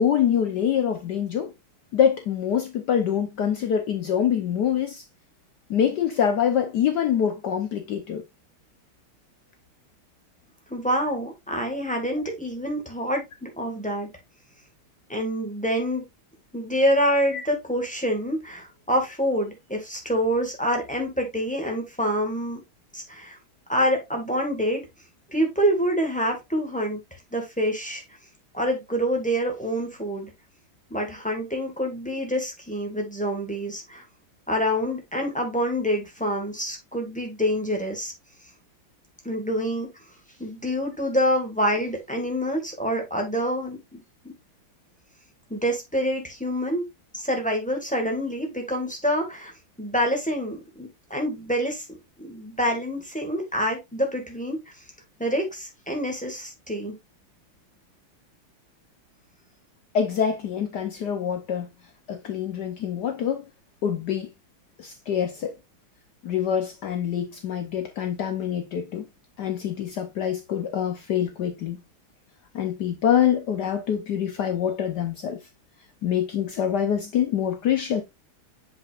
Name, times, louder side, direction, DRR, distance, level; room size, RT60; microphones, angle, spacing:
voice 1, 0.0-1.5 1.9-5.0 5.7-8.2 17.3-17.4 59.9-61.7 62.1-63.5 63.8-64.3 64.8-65.5 66.2-69.1 69.4-71.8 72.5-75.4 76.0-78.0, left 8 dB, 60° left, 1.2 m, -25 dB
voice 2, 10.7-14.1 15.1-16.0 16.5-22.6 22.9-23.4 23.7-24.9 25.3-28.0 28.5-30.3 30.9-34.0 34.5-38.1 39.2-39.9 40.4-44.0 44.2-44.3 45.5-46.8 47.1-49.5 49.8-54.6 55.2-56.9, equal, 5° left, 1.6 m, -26 dB
7.7 x 5.4 x 2.5 m
omnidirectional pair, 2.3 m